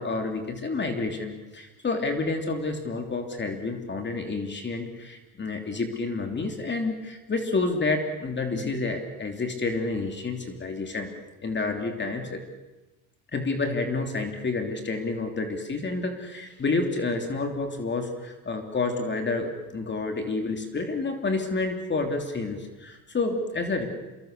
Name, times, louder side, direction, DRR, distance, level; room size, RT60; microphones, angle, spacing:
voice 1, 0.0-11.1 11.4-12.4 13.3-23.9, left 3 dB, 25° left, 5 dB, 3.1 m, -29 dB
28.0 x 22.0 x 6.8 m, 1.1 s
supercardioid pair, 100°, 42 cm